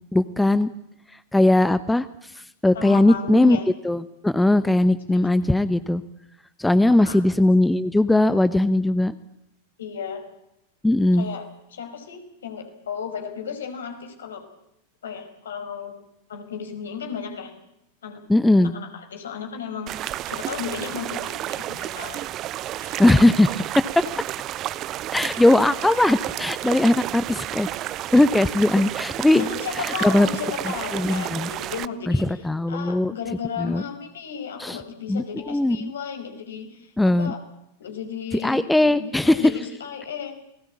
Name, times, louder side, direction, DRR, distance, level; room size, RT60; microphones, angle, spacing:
voice 1, 0.1-0.7 1.3-2.3 2.6-3.6 3.8-6.0 6.6-9.1 10.8-11.2 18.3-18.7 23.0-24.0 25.1-27.7 28.1-29.5 29.8-30.3 30.9-31.5 32.1-33.1 33.6-33.8 34.6-34.8 35.1-35.9 37.0-37.3 38.4-39.5, left 1 dB, 5° left, 15 dB, 0.9 m, -19 dB
voice 2, 2.8-3.7 5.1-5.2 6.9-7.2 9.8-10.2 11.1-14.4 15.0-16.0 16.3-17.5 18.0-18.2 18.6-22.3 22.8-23.0 29.3-37.4 37.8-38.7 39.0-40.3, left 7 dB, 65° left, 6 dB, 5.3 m, -34 dB
sound 1, 19.9-31.9, right 13 dB, 35° right, 0.9 m, -31 dB
29.5 x 20.0 x 8.6 m, 0.82 s
figure-of-eight pair, 90°, 0 cm